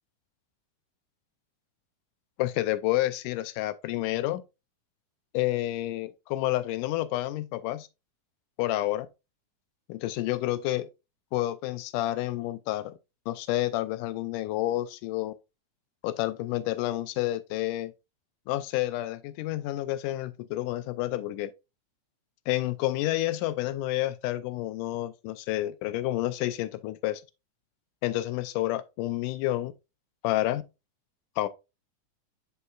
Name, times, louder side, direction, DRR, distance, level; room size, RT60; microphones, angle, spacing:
voice 1, 2.4-4.4 5.3-7.9 8.6-9.1 9.9-10.9 11.3-13.0 13.3-15.3 16.0-17.9 18.5-21.5 22.5-27.2 28.0-29.7 30.2-30.6 31.4-31.5, left 15 dB, 85° left, 2.1 m, -29 dB
8.2 x 5.7 x 2.4 m
omnidirectional pair, 3.6 m